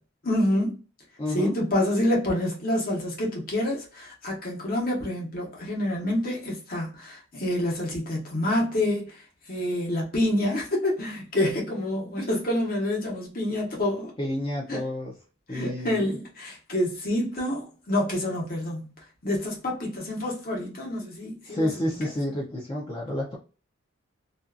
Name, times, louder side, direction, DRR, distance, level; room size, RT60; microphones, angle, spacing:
voice 1, 0.2-0.8 1.3-9.2 9.5-14.1 14.7-14.9 15.5-18.9 19.2-22.1, left 1 dB, 45° left, 1.0 m, -27 dB
voice 2, 1.2-1.6 14.2-15.1 15.5-16.1 21.5-23.3, left 1 dB, 25° left, 0.5 m, -29 dB
2.6 x 2.3 x 2.3 m
head